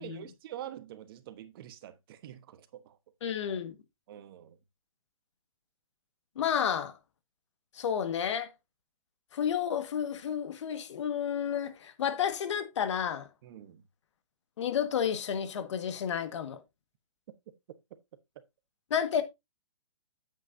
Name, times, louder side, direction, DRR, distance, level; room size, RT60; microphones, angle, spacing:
voice 1, 0.0-3.0 4.1-4.6 13.4-13.8, right 11 dB, 45° right, 1.2 m, -46 dB
voice 2, 3.2-3.8 6.3-7.0 7.7-8.5 9.3-13.3 14.6-16.6 18.9-19.2, left 8 dB, 60° left, 1.7 m, -31 dB
9.0 x 8.4 x 2.7 m
hypercardioid pair, 140°, 17 cm